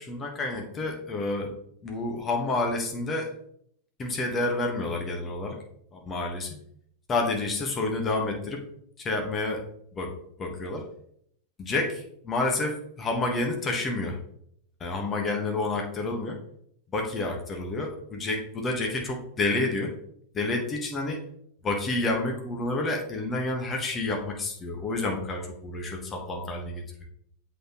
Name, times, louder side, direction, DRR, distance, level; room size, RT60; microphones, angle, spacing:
voice 1, 0.0-1.5 1.8-3.3 4.0-5.6 5.9-6.6 7.1-8.6 9.0-9.6 9.9-10.1 10.4-10.8 11.6-14.2 14.8-16.4 16.9-19.9 20.3-21.2 21.6-26.8, left 2 dB, 20° left, 2 dB, 1.4 m, -29 dB
7.8 x 4.2 x 3.1 m, 0.69 s
figure-of-eight pair, 90°, 0 cm